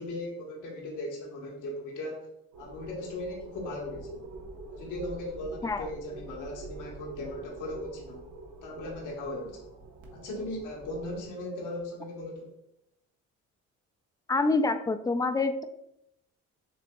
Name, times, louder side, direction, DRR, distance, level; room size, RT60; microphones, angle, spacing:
voice 1, 0.0-2.3 2.6-4.3 4.7-8.2 8.6-9.7 10.1-12.5, left 1 dB, 85° left, -1 dB, 1.2 m, -38 dB
sound 1, 2.5-11.2, right 2 dB, 75° right, 1.0 m, -45 dB
voice 2, 14.3-15.6, left 3 dB, 15° left, 9 dB, 0.3 m, -26 dB
7.0 x 2.9 x 2.3 m, 0.81 s
cardioid pair, 90°, 30 cm